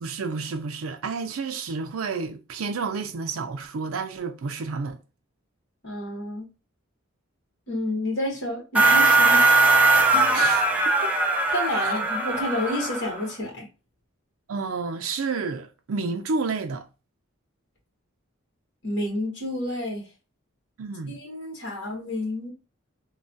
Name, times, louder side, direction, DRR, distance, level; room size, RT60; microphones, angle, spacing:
voice 1, 0.0-5.0 10.3-10.9 11.8-12.0 14.5-16.9 20.8-21.2, right 4 dB, 90° right, 0.4 m, -30 dB
voice 2, 5.8-6.4 7.7-9.6 10.1-10.4 11.5-13.7 18.8-20.0 21.1-22.5, left 1 dB, 60° left, 1.3 m, -30 dB
sound 1, 8.7-13.3, right 3 dB, 10° right, 0.6 m, -20 dB
3.0 x 2.3 x 2.6 m
head